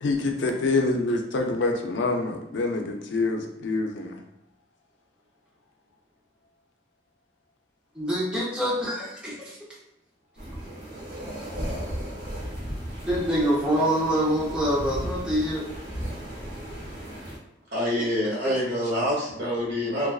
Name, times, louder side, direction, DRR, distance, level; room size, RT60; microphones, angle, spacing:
voice 1, 0.0-4.2, left 3 dB, 80° left, 3 dB, 0.4 m, -26 dB
voice 2, 7.9-9.6 13.1-15.7 18.0-18.1 18.4-18.5, equal, 5° right, -6 dB, 0.6 m, -25 dB
sound 1, 10.4-17.4, equal, 55° right, 0.8 m, -35 dB
voice 3, 17.7-20.1, equal, 75° right, -5 dB, 1.0 m, -26 dB
2.4 x 2.2 x 2.3 m, 0.85 s
head